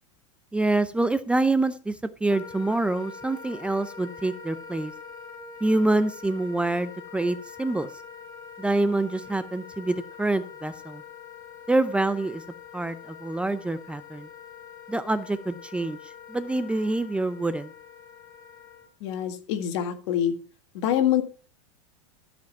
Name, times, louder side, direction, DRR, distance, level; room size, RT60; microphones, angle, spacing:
voice 1, 0.5-2.0 2.2-4.9 5.6-7.9 8.6-11.0 11.7-12.4 12.7-14.3 14.9-16.0 16.3-17.7, right 2 dB, 5° right, 14 dB, 0.6 m, -26 dB
Wind instrument woodwind instrument, 2.3-18.9, left 6 dB, 20° left, 2.0 m, -44 dB
voice 2, 19.0-20.3 20.7-21.2, left 10 dB, 60° left, 8 dB, 1.9 m, -25 dB
13.5 x 5.2 x 5.6 m, 0.38 s
hypercardioid pair, 115°, 16 cm